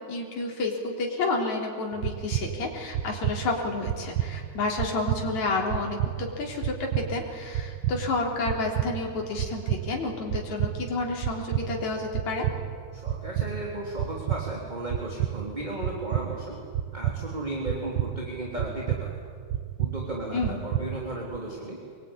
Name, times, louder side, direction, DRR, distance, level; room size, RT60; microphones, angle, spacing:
voice 1, 0.1-12.5 20.3-20.7, left 3 dB, 70° left, 0 dB, 4.9 m, -30 dB
sound 1, 1.9-21.4, right 12 dB, 90° right, 1.1 m, -32 dB
voice 2, 12.9-16.6 16.9-19.1 19.8-21.8, right 1 dB, 15° right, -2 dB, 3.1 m, -35 dB
25.0 x 22.0 x 9.9 m, 2.1 s
omnidirectional pair, 3.4 m